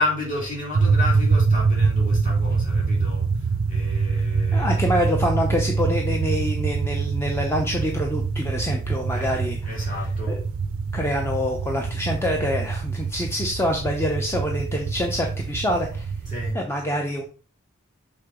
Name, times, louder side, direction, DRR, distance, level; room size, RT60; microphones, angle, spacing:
voice 1, 0.0-3.2 3.7-4.7 9.1-9.3 9.6-10.4 16.3-16.6, left 1 dB, 40° left, 3.4 m, -29 dB
sound 1, 0.7-16.5, right 4 dB, 70° right, 0.5 m, -24 dB
voice 2, 4.5-10.4 10.9-16.1 16.5-17.2, equal, 10° left, 0.7 m, -26 dB
6.4 x 3.7 x 5.0 m
head